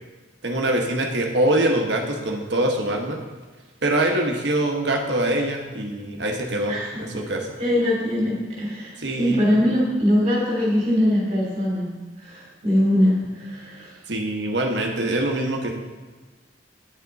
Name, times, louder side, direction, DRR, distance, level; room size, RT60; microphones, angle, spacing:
voice 1, 0.4-3.2 3.8-7.6 9.0-9.5 14.1-15.7, right 1 dB, 70° right, 1 dB, 1.3 m, -24 dB
voice 2, 6.7-7.0 7.6-11.9 12.2-13.9, left 1 dB, 35° right, -4 dB, 3.1 m, -22 dB
9.2 x 7.4 x 4.1 m, 1.3 s
head